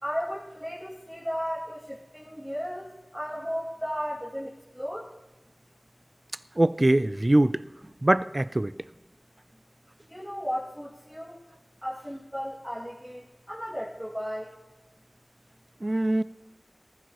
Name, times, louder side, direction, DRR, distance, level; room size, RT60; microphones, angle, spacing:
voice 1, 0.0-4.5 4.7-5.1 10.1-11.4 11.8-14.5, equal, 5° right, -6 dB, 2.5 m, -34 dB
voice 2, 6.6-7.6 8.0-8.7 15.8-16.2, right 1 dB, 35° right, 16 dB, 0.4 m, -22 dB
18.5 x 15.0 x 3.1 m, 1.1 s
wide cardioid pair, 55°, 0 cm